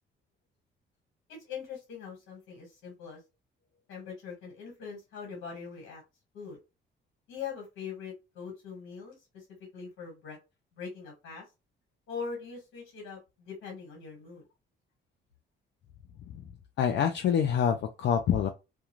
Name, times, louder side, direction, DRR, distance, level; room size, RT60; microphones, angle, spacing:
voice 1, 1.5-3.2 3.9-6.0 6.3-6.6 7.3-9.4 9.7-10.4 10.8-11.4 12.1-14.4, left 6 dB, 90° left, 1.4 m, -42 dB
voice 2, 16.8-18.5, left 8 dB, 65° left, 0.4 m, -26 dB
2.5 x 2.3 x 3.0 m
cardioid pair, 90°, 20 cm